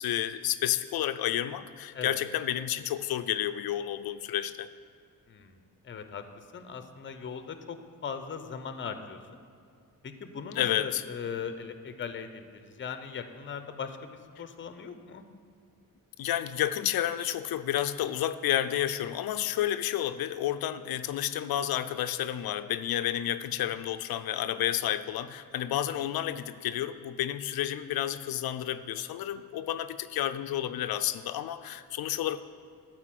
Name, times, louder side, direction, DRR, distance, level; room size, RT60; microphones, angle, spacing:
voice 1, 0.0-4.7 10.6-11.0 16.2-32.4, left 12 dB, 90° left, 10 dB, 0.5 m, -30 dB
voice 2, 5.8-7.8 8.0-9.2 10.0-15.2, left 6 dB, 35° left, 8 dB, 0.6 m, -39 dB
13.0 x 4.4 x 7.6 m, 2.4 s
wide cardioid pair, 160°, 35 cm